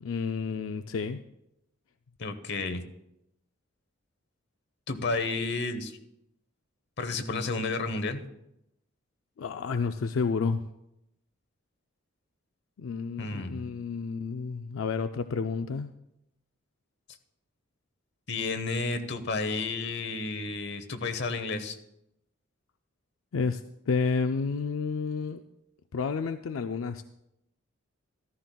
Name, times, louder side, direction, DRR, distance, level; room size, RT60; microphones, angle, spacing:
voice 1, 0.0-1.2 9.4-10.6 12.8-15.9 23.3-23.6 23.9-25.4 25.9-27.0, left 5 dB, 90° left, 8 dB, 0.4 m, -30 dB
voice 2, 2.2-2.8 4.9-5.9 7.0-8.2 13.2-13.7 18.3-21.8, left 3 dB, 60° left, 9 dB, 1.0 m, -31 dB
14.0 x 13.0 x 2.3 m, 0.83 s
head